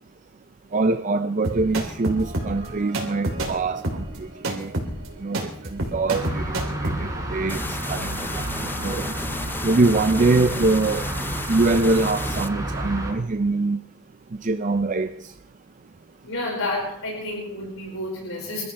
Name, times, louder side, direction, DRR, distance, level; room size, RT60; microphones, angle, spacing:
voice 1, 0.7-4.7 5.2-7.6 7.9-9.1 9.6-11.1 11.5-13.8 14.4-15.1, right 3 dB, 40° right, 0.5 m, -23 dB
sound 1, 1.4-7.0, right 1 dB, 85° right, 3.1 m, -29 dB
sound 2, 6.1-13.1, right 1 dB, 15° right, 4.1 m, -30 dB
sound 3, 7.5-12.5, left 2 dB, 10° left, 0.5 m, -34 dB
voice 2, 16.2-18.6, left 2 dB, 85° left, 5.2 m, -30 dB
26.5 x 13.5 x 3.4 m
head